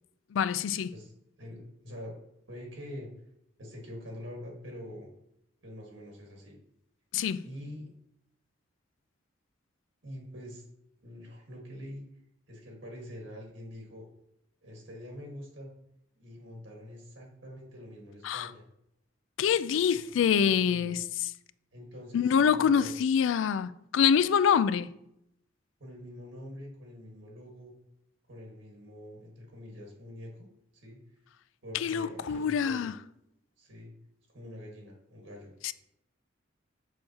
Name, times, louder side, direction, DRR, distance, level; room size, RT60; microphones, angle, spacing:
voice 1, 0.3-0.9 7.1-7.4 18.2-18.5 19.4-21.3 22.1-24.9 31.7-32.9 35.6-35.7, left 7 dB, 80° left, 0.3 m, -26 dB
voice 2, 1.4-2.2 2.5-3.1 3.6-5.1 5.6-6.5 7.4-7.9 10.0-10.7 11.0-12.0 12.5-14.1 14.6-15.7 16.1-18.6 20.3-20.9 21.7-23.0 25.8-27.7 28.3-31.0 31.6-32.9 33.6-33.9 34.3-35.7, left 1 dB, 80° right, 1.6 m, -45 dB
6.5 x 6.3 x 2.8 m
head